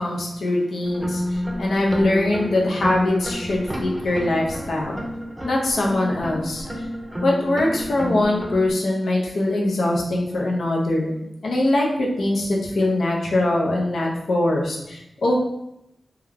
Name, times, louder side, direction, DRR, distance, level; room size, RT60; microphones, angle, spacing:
voice 1, 0.0-5.0 5.4-6.9 7.2-15.3, left 1 dB, 75° left, -2 dB, 0.6 m, -22 dB
sound 1, 0.8-8.7, equal, 20° right, 0.6 m, -30 dB
2.3 x 2.2 x 3.3 m, 0.82 s
cardioid pair, 45°, 0 cm